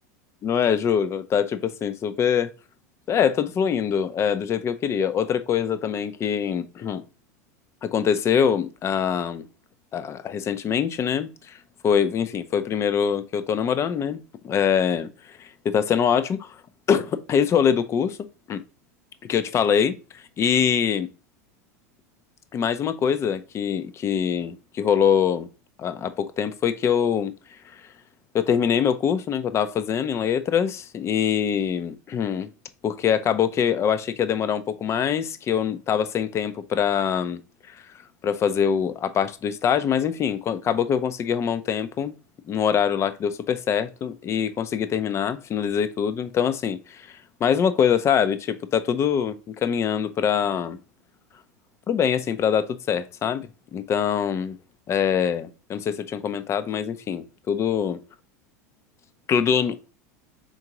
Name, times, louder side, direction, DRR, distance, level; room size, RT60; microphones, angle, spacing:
voice 1, 0.4-2.5 3.1-7.0 7.8-9.5 9.9-11.6 11.8-16.6 16.9-18.2 18.5-18.6 19.2-21.1 22.5-25.5 25.8-27.3 28.3-32.5 32.8-37.4 37.7-37.8 38.2-42.1 42.5-47.1 47.4-50.8 51.9-54.6 54.9-58.0 59.3-59.8, left 8 dB, 30° left, 0.5 m, -24 dB
3.9 x 3.6 x 2.9 m
hypercardioid pair, 100°, 9 cm